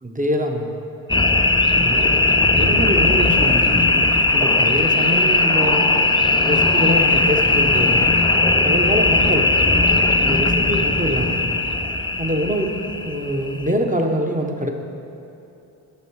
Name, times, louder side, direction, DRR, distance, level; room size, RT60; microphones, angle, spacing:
voice 1, 0.0-0.7 1.8-2.1 2.4-3.9 4.3-6.0 6.4-8.1 8.6-9.5 10.2-11.5 12.2-14.7, equal, 15° right, 3 dB, 1.1 m, -24 dB
sound 1, 1.1-13.7, left 2 dB, 10° left, 0.6 m, -18 dB
10.0 x 6.8 x 4.8 m, 2.9 s
supercardioid pair, 40°, 46 cm